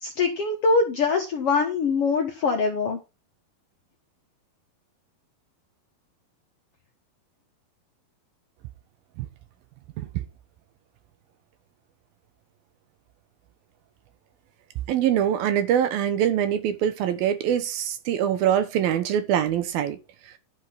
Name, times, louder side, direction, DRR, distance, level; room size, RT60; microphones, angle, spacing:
voice 1, 0.0-3.0, left 4 dB, 60° left, 1.6 m, -23 dB
voice 2, 14.9-20.0, right 10 dB, 75° right, 2.9 m, -24 dB
11.5 x 6.0 x 5.8 m
omnidirectional pair, 4.3 m